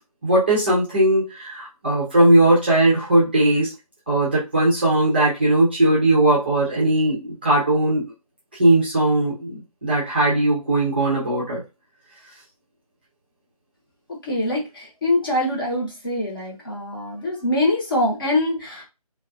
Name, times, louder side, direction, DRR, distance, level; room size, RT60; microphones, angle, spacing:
voice 1, 0.2-3.7 4.1-8.0 8.6-11.6, right 1 dB, 15° right, -6 dB, 0.5 m, -19 dB
voice 2, 14.2-18.8, left 1 dB, 35° left, -3 dB, 0.9 m, -24 dB
2.4 x 2.3 x 2.4 m, 0.27 s
figure-of-eight pair, 165°, 20 cm